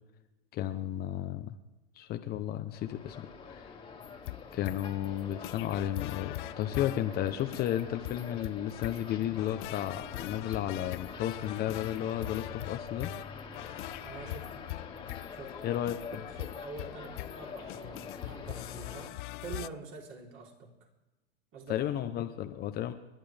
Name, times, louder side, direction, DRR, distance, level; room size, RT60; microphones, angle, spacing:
voice 1, 0.5-1.6 1.9-3.7 4.5-13.1 15.6-15.9 21.7-22.9, left 11 dB, 30° left, 7 dB, 0.9 m, -33 dB
sound 1, 2.7-19.1, left 5 dB, 15° left, 2.1 m, -45 dB
sound 2, 4.0-19.7, left 19 dB, 55° left, 0.5 m, -42 dB
voice 2, 14.0-14.5 15.3-15.8 16.1-19.1 19.4-20.7 21.5-21.9, right 4 dB, 40° right, -1 dB, 3.9 m, -46 dB
30.0 x 11.0 x 3.5 m, 1.1 s
hypercardioid pair, 125°, 31 cm